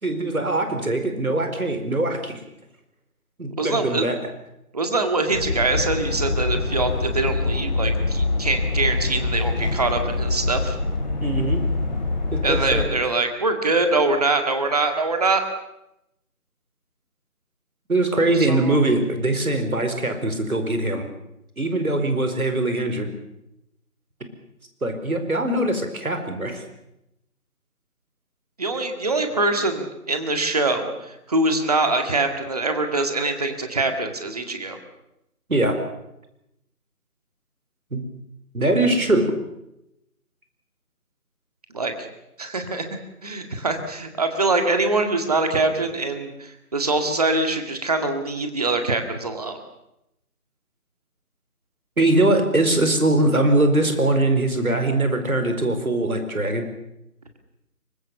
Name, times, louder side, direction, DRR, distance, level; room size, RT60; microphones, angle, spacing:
voice 1, 0.0-2.4 3.4-4.2 11.2-11.6 12.3-12.9 17.9-21.1 21.6-23.1 24.8-26.6 35.5-35.8 37.9-38.0 38.5-39.3 52.0-56.7, right 2 dB, 70° right, 7 dB, 4.8 m, -22 dB
voice 2, 3.6-4.1 4.7-10.8 12.4-15.4 18.2-18.8 28.6-34.8 41.7-42.1 42.4-42.8 43.2-49.6, right 2 dB, 25° right, 6 dB, 2.0 m, -24 dB
sound 1, 5.3-12.9, left 3 dB, 30° left, 2.9 m, -25 dB
24.5 x 21.5 x 7.0 m, 0.86 s
figure-of-eight pair, 165°, 45 cm